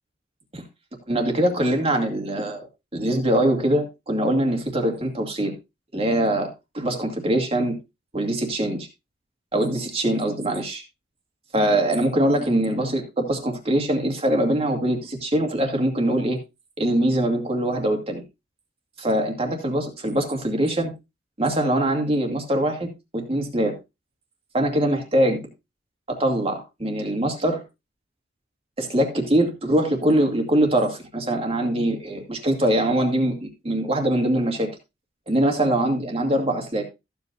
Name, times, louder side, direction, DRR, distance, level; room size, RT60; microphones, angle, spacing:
voice 1, 1.1-2.6 2.9-5.5 5.9-6.5 6.7-7.7 8.1-8.9 9.5-10.8 11.5-16.4 16.8-18.2 19.0-20.9 21.4-22.9 23.1-23.7 24.5-25.4 26.1-27.6 28.8-34.7 35.3-36.8, right 1 dB, 30° right, 3 dB, 2.4 m, -23 dB
14.5 x 8.0 x 2.6 m, 0.25 s
head